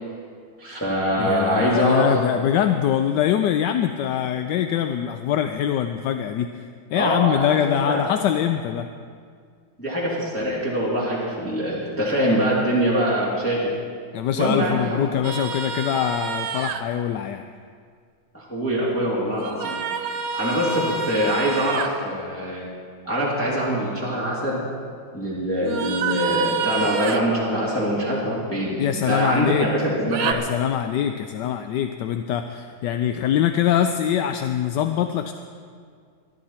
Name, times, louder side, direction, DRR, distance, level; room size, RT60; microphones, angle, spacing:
voice 1, 0.6-2.1 2.3-2.4 6.9-8.0 9.8-13.7 14.4-15.2 18.3-19.8 20.3-22.7 23.0-24.6 25.1-30.2, equal, 5° left, -7 dB, 2.8 m, -24 dB
voice 2, 1.2-8.9 14.1-17.5 28.8-29.7 30.2-35.3, left 10 dB, 70° left, 8 dB, 1.1 m, -23 dB
sound 1, 15.2-16.8 19.4-21.9 25.6-27.2 30.1-30.3, right 6 dB, 85° right, 1.7 m, -28 dB
21.0 x 12.5 x 4.3 m, 2.1 s
omnidirectional pair, 2.2 m